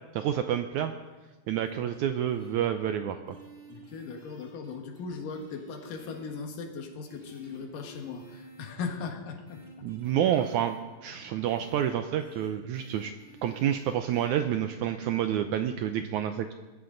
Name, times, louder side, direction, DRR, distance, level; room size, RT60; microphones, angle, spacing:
voice 1, 0.1-0.9 1.5-3.4 9.8-10.8 11.0-13.1 13.4-16.5, right 10 dB, 85° right, 8 dB, 1.7 m, -28 dB
sound 1, 1.6-2.5 3.1-5.0 5.4-6.4 7.1-8.7 9.5-10.8 11.5-11.9 12.2-12.5 12.7-14.3, right 1 dB, 20° right, 6.8 m, -52 dB
voice 2, 3.7-9.6, left 5 dB, 70° left, 4 dB, 3.1 m, -38 dB
21.0 x 14.0 x 3.9 m, 1.2 s
omnidirectional pair, 4.1 m